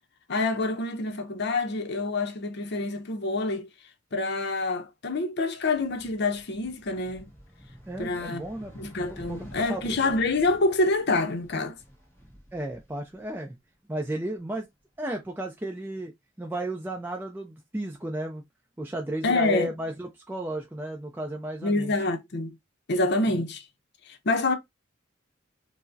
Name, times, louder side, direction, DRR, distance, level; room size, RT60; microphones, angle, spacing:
voice 1, 0.3-3.7 4.1-7.3 8.0-8.4 8.7-11.8 19.2-19.7 21.6-22.6 22.9-23.6 24.1-24.5, left 2 dB, 55° left, 0.6 m, -27 dB
sound 1, 5.6-13.7 14.1-15.2, equal, 15° left, 1.2 m, -50 dB
voice 2, 7.9-9.4 9.7-10.1 12.5-13.6 13.9-14.7 15.0-16.1 16.4-18.4 18.8-21.9, right 1 dB, 10° right, 0.4 m, -34 dB
4.6 x 2.1 x 2.6 m
head